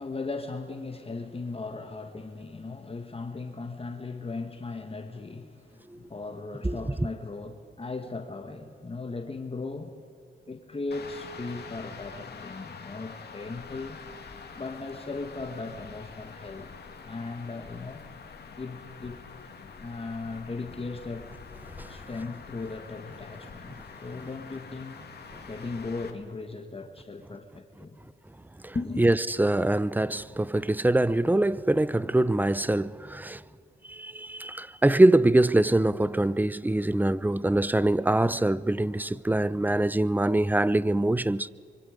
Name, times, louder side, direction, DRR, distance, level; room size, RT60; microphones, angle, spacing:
voice 1, 0.0-10.0 10.5-14.0 14.5-16.7 17.0-18.0 18.6-21.3 21.9-25.0 25.5-28.0 28.7-29.0, left 3 dB, 30° left, 1.8 m, -37 dB
sound 1, 10.9-26.1, left 5 dB, 55° left, 2.6 m, -45 dB
voice 2, 28.6-33.4 33.9-41.5, right 1 dB, 10° right, 0.6 m, -24 dB
25.0 x 24.5 x 5.2 m
cardioid pair, 80°, 20 cm